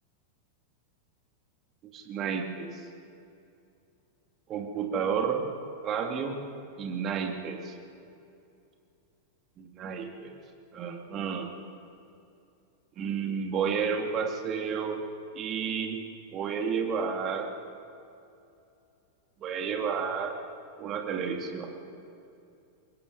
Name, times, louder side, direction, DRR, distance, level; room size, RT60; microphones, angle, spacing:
voice 1, 1.9-2.8 4.5-5.5 5.8-6.4 6.8-7.7 9.6-10.4 10.7-11.5 13.0-15.0 15.3-16.0 16.3-17.5 19.4-20.4 20.8-21.7, right 6 dB, 30° right, 3 dB, 2.7 m, -31 dB
24.0 x 21.0 x 5.4 m, 2.6 s
figure-of-eight pair, 90°, 0 cm